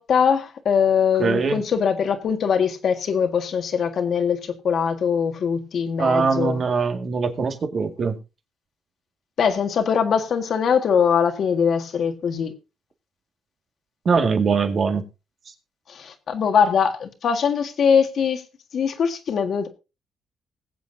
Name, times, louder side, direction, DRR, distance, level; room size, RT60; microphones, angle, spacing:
voice 1, 0.0-6.6 9.4-12.5 15.9-18.4 18.7-19.7, left 7 dB, 60° left, 1.8 m, -22 dB
voice 2, 1.2-1.6 6.0-8.2 14.1-15.0, right 5 dB, 50° right, 2.0 m, -22 dB
20.5 x 7.8 x 2.7 m
cardioid pair, 90°, 0 cm